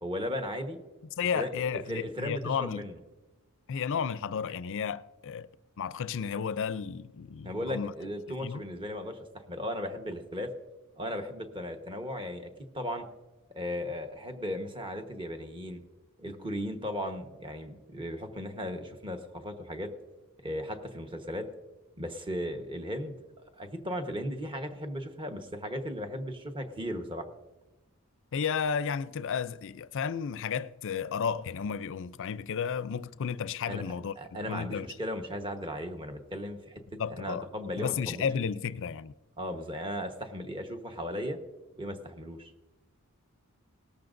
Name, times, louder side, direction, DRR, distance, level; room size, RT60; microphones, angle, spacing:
voice 1, 0.0-0.8 1.3-1.5 1.9-2.9 7.4-10.5 11.0-13.0 13.5-15.8 16.2-19.9 20.4-21.5 22.0-23.1 23.6-27.3 33.7-33.8 34.2-36.8 37.1-38.2 39.4-41.4 41.8-42.5, equal, 25° right, 1.2 m, -36 dB
voice 2, 1.2-2.9 3.7-5.5 5.8-7.9 8.4-8.6 28.3-34.1 34.5-34.9 37.0-37.4 37.8-39.1, left 6 dB, 60° left, 0.5 m, -32 dB
18.0 x 13.5 x 2.6 m
head